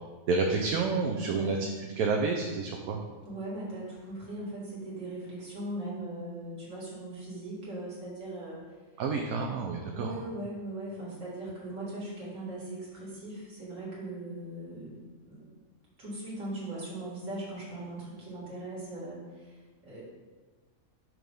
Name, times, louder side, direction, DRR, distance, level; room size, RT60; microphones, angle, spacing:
voice 1, 0.3-1.6 2.0-3.0 9.0-10.1, right 4 dB, 80° right, 1 dB, 1.0 m, -29 dB
voice 2, 1.2-1.6 3.2-8.6 9.9-15.6 16.0-20.0, right 1 dB, 60° right, -6 dB, 2.2 m, -39 dB
6.1 x 3.2 x 5.2 m, 1.3 s
omnidirectional pair, 1.5 m